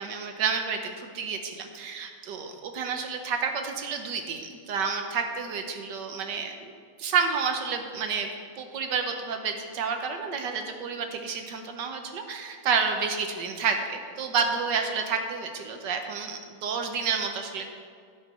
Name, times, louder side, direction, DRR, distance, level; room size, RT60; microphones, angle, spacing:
voice 1, 0.0-6.7 7.0-8.3 8.6-17.6, right 5 dB, 65° right, 4 dB, 1.3 m, -30 dB
15.5 x 6.0 x 4.3 m, 2.1 s
omnidirectional pair, 2.3 m